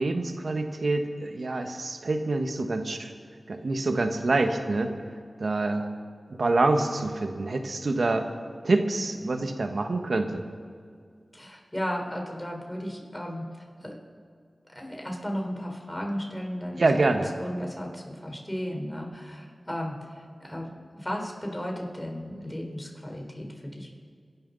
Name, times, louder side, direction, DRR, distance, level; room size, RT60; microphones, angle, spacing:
voice 1, 0.0-3.1 3.5-4.9 5.4-5.9 6.3-8.3 8.6-10.4 16.8-17.3, right 2 dB, 70° right, 6 dB, 1.3 m, -26 dB
voice 2, 11.3-13.4 13.8-14.0 14.8-23.5 23.7-23.9, equal, 15° left, 1 dB, 4.0 m, -35 dB
26.5 x 12.0 x 4.0 m, 2.1 s
cardioid pair, 40°, 0 cm